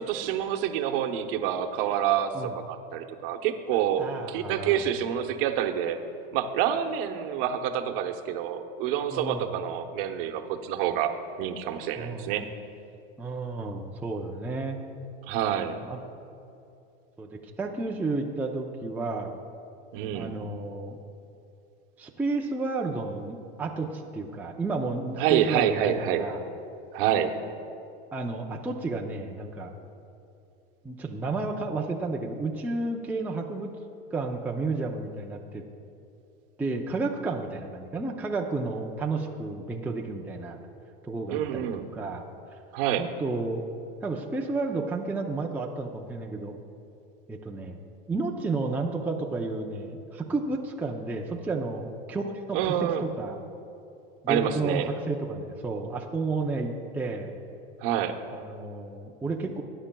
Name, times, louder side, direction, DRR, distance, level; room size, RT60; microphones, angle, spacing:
voice 1, 0.0-6.0 6.3-11.1 11.4-12.4 15.2-15.8 19.9-20.3 25.2-26.2 26.9-27.3 41.3-41.9 42.7-43.1 52.5-53.0 54.3-54.9 57.8-58.2, right 10 dB, 65° right, 6 dB, 1.0 m, -27 dB
voice 2, 4.0-4.8 9.1-9.5 12.0-12.5 13.2-14.8 15.8-16.0 17.2-19.3 20.1-21.0 22.0-26.4 28.1-29.7 30.8-33.7 34.1-35.6 36.6-40.6 41.0-42.3 43.0-43.6 44.0-46.6 47.3-47.8 48.1-53.4 54.2-57.3 58.3-59.6, right 3 dB, 5° right, 0 dB, 0.5 m, -32 dB
19.0 x 9.9 x 2.3 m, 2.6 s
supercardioid pair, 135°, 30 cm